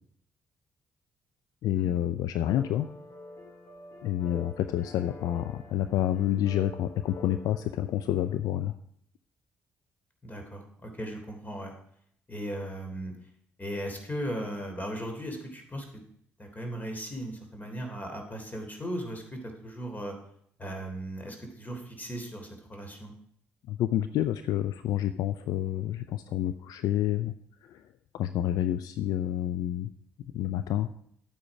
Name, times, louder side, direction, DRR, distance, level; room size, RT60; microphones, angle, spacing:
voice 1, 1.6-2.9 4.0-8.8 23.7-27.3 27.6-27.8 28.1-29.9 30.3-30.9, left 12 dB, 70° left, 11 dB, 0.5 m, -28 dB
sound 1, 2.4-8.3, left 2 dB, 50° left, 3.9 m, -47 dB
voice 2, 10.2-11.7 12.3-13.1 13.6-15.8 16.4-20.2 20.6-23.1, equal, 25° left, 4 dB, 3.4 m, -37 dB
11.5 x 8.8 x 4.9 m, 0.66 s
hypercardioid pair, 45°, 7 cm